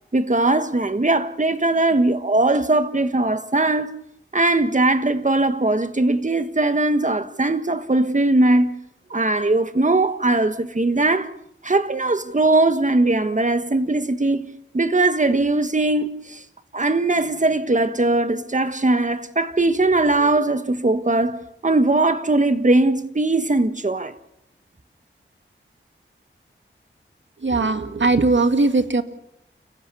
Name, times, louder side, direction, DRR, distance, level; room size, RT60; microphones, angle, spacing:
voice 1, 0.1-3.9 4.3-8.7 9.1-11.3 11.6-14.5 14.7-16.4 16.7-21.4 21.6-24.1, right 2 dB, 35° right, 1.6 m, -20 dB
voice 2, 27.4-29.0, right 3 dB, 60° right, 2.0 m, -19 dB
29.5 x 16.0 x 7.0 m
wide cardioid pair, 65°, 21 cm